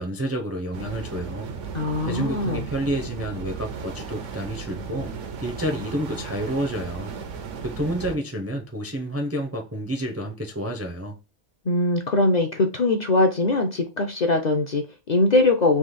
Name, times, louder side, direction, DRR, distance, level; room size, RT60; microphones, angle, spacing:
voice 1, 0.0-1.5 2.0-5.1 5.4-7.1 7.6-11.2, right 1 dB, 20° right, 0.4 m, -29 dB
sound 1, 0.7-8.2, right 5 dB, 80° right, 1.1 m, -35 dB
voice 2, 1.7-2.6 11.6-15.8, left 2 dB, 45° left, 0.6 m, -21 dB
3.8 x 2.9 x 4.0 m
omnidirectional pair, 1.2 m